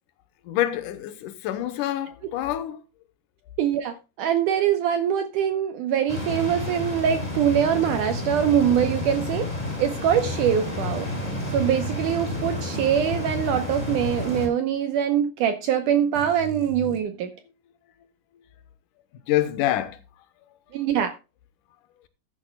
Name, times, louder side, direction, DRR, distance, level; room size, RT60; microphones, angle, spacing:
voice 1, 0.5-2.8 19.3-20.0, left 13 dB, 80° left, 1.9 m, -26 dB
voice 2, 3.6-9.5 9.8-11.1 11.5-17.3 20.7-21.1, right 9 dB, 90° right, 1.8 m, -23 dB
sound 1, 6.1-14.5, left 2 dB, 10° left, 3.5 m, -30 dB
sound 2, 10.4-14.2 14.4-14.5 16.1-17.0, right 4 dB, 40° right, 1.8 m, -38 dB
15.0 x 11.0 x 2.2 m
omnidirectional pair, 4.8 m